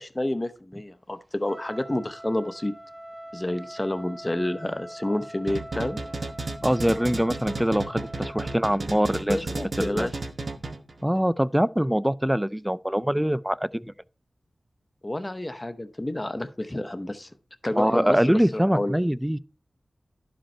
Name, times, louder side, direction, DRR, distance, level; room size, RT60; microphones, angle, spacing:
voice 1, 0.0-2.7 3.3-6.0 9.3-10.1 15.0-17.3 17.6-19.0, left 1 dB, 25° left, 0.7 m, -29 dB
Trumpet, 1.4-8.7, right 1 dB, 25° right, 1.0 m, -43 dB
sound 1, 5.5-11.0, right 2 dB, 65° right, 0.9 m, -33 dB
voice 2, 6.6-9.5 9.8-10.1 11.0-13.9 17.7-19.4, equal, 10° right, 0.3 m, -23 dB
11.0 x 5.2 x 4.3 m
wide cardioid pair, 60°, 0 cm